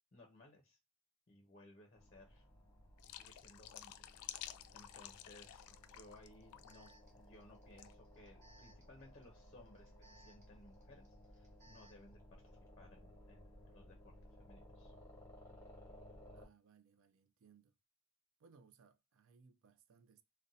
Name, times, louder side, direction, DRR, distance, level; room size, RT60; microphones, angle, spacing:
voice 1, 0.1-0.8 1.3-2.5 3.0-4.1 4.7-14.9, left 1 dB, 30° left, 0.6 m, -62 dB
sound 1, 2.0-16.5, equal, 10° left, 1.0 m, -60 dB
sound 2, 3.0-6.3 6.5-6.9 7.8-7.9, left 12 dB, 80° left, 0.3 m, -52 dB
Alarm, 4.0-4.1 4.8-12.1, right 2 dB, 35° right, 0.8 m, -69 dB
voice 2, 16.3-17.7 18.4-20.2, right 5 dB, 60° right, 0.4 m, -66 dB
2.6 x 2.1 x 3.9 m
head